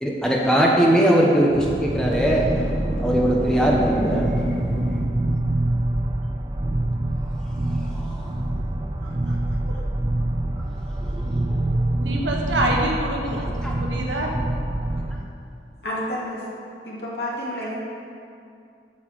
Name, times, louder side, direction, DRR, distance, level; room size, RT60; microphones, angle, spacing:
voice 1, 0.0-5.1 7.2-8.3 10.9-11.7 13.4-13.7, right 1 dB, 5° left, -3 dB, 1.0 m, -22 dB
sound 1, 1.5-15.2, right 1 dB, 25° right, 0.5 m, -26 dB
voice 2, 9.0-9.8 12.0-13.5 13.8-14.4, right 1 dB, 90° right, 0 dB, 1.4 m, -27 dB
voice 3, 15.8-16.4 16.8-17.8, left 1 dB, 65° left, -6 dB, 2.4 m, -29 dB
8.6 x 5.7 x 6.5 m, 2.5 s
head